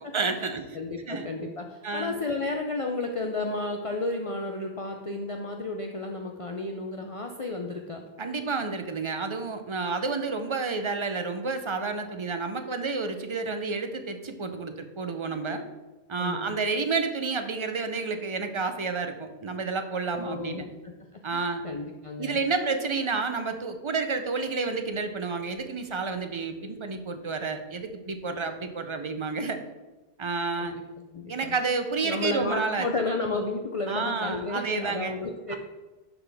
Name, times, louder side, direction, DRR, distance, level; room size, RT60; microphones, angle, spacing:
voice 1, 0.0-0.6 1.1-1.3 1.8-2.2 8.2-15.6 16.1-20.7 21.2-21.6 22.2-29.6 30.2-30.7 31.3-32.9 33.9-35.1 35.5-35.6, right 4 dB, 40° right, 7 dB, 0.5 m, -30 dB
voice 2, 0.7-8.0 16.2-16.5 20.1-22.4 30.6-30.8 31.1-31.5 32.0-35.6, left 2 dB, 45° left, 2 dB, 0.5 m, -32 dB
11.5 x 4.0 x 3.4 m, 1.1 s
omnidirectional pair, 1.1 m